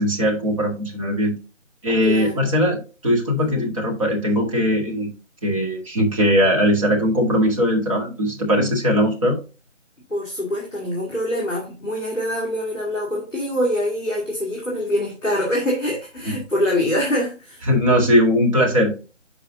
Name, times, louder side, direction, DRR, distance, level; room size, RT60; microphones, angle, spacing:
voice 1, 0.0-1.3 1.8-5.1 5.4-9.4 16.3-16.4 17.7-18.9, equal, 25° right, 1.8 m, -20 dB
voice 2, 2.0-2.3 3.4-3.6 8.5-8.7 10.1-17.7, left 1 dB, ahead, 1.1 m, -24 dB
10.5 x 4.8 x 2.6 m
figure-of-eight pair, 160°, 38 cm